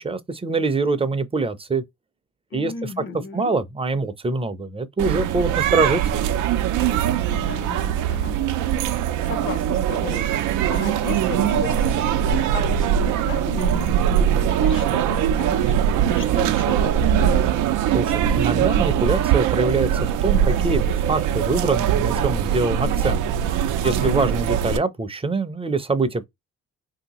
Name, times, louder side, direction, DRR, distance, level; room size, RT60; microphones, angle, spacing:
voice 1, 0.0-1.8 2.5-2.9 3.3-6.0 17.9-23.2 23.8-26.2, right 3 dB, 20° right, 0.5 m, -24 dB
voice 2, 2.5-3.5 7.3-8.8 9.2-10.3 10.7-17.6 23.8-24.1, left 4 dB, 40° left, 0.6 m, -35 dB
sound 1, 5.0-24.8, right 9 dB, 85° right, 0.5 m, -21 dB
3.2 x 2.8 x 2.9 m
cardioid pair, 90°, 30 cm